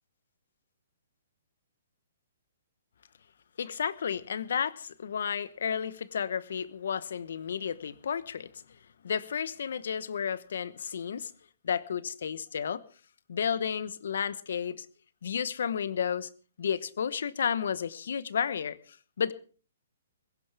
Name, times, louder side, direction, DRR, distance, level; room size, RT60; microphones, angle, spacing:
voice 1, 3.6-8.6 9.0-11.3 11.6-12.8 13.3-14.9 15.2-16.3 16.6-19.3, left 7 dB, 70° left, 1.0 m, -32 dB
21.0 x 16.0 x 3.4 m
hypercardioid pair, 140°, 0 cm